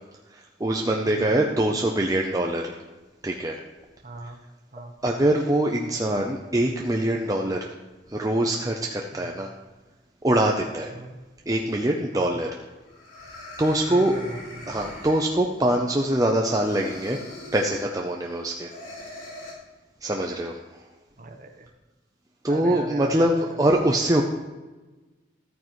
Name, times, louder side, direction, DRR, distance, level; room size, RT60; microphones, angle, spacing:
voice 1, 0.3-2.8 3.2-3.6 5.0-7.7 8.1-9.5 10.2-10.9 11.5-12.5 13.6-14.1 14.7-17.2 17.5-18.7 20.0-20.6 22.4-24.2, right 1 dB, 20° right, 1 dB, 0.6 m, -23 dB
voice 2, 1.1-1.4 4.0-4.4 4.7-4.9 9.1-9.4 10.9-11.2 12.1-12.4 13.9-14.7 21.2-21.7 22.5-23.7, right 2 dB, 40° right, 5 dB, 1.1 m, -39 dB
sound 1, 12.9-15.7 16.6-17.9 18.7-19.5, left 1 dB, 90° left, 3.4 m, -41 dB
13.5 x 9.3 x 3.1 m, 1.2 s
head